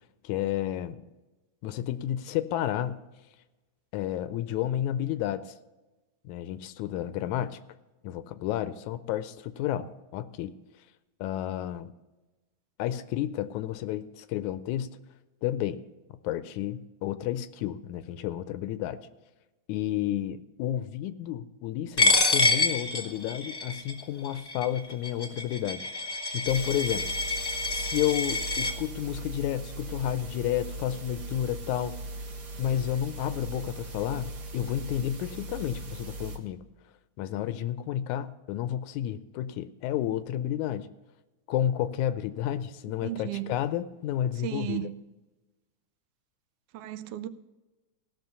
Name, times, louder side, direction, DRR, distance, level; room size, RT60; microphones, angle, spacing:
voice 1, 0.2-1.0 1.6-3.0 3.9-5.5 6.3-7.6 8.0-10.5 11.2-11.9 12.8-15.0 15.4-15.8 16.2-19.0 19.7-25.9 26.3-27.1 27.7-32.0 32.6-36.6 37.2-40.9 41.5-44.9, left 11 dB, 80° left, 1.9 m, -31 dB
Coin (dropping), 22.0-28.7, left 3 dB, 20° left, 0.7 m, -27 dB
sound 1, 26.5-36.4, right 2 dB, 50° right, 1.3 m, -39 dB
voice 2, 43.0-43.5 44.4-44.9 46.7-47.3, right 14 dB, 85° right, 2.1 m, -34 dB
16.5 x 6.1 x 6.7 m
omnidirectional pair, 3.5 m